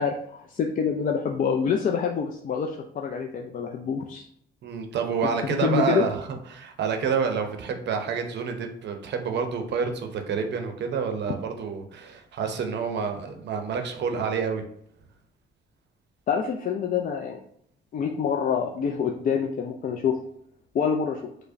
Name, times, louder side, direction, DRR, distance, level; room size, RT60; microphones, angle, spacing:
voice 1, 0.0-4.2 5.5-6.1 16.3-17.4 17.9-20.2 20.7-21.2, left 6 dB, 45° left, 1 dB, 0.4 m, -26 dB
voice 2, 4.6-14.6, right 6 dB, 60° right, 6 dB, 0.6 m, -28 dB
4.7 x 2.1 x 2.5 m, 0.69 s
cardioid pair, 90°, 20 cm